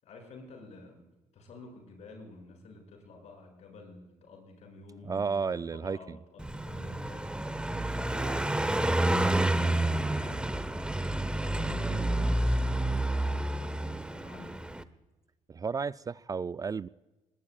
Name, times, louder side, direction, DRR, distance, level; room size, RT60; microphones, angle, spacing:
voice 1, 0.0-1.0 1.3-7.6 7.9-11.0 11.4-14.8, left 3 dB, 65° left, 2 dB, 6.9 m, -50 dB
voice 2, 5.0-6.2 15.5-16.9, right 5 dB, 30° right, 17 dB, 0.4 m, -33 dB
Car passing by, 6.4-14.8, right 1 dB, 10° right, 1.0 m, -29 dB
21.5 x 20.5 x 2.4 m, 1.1 s
supercardioid pair, 65°, 13 cm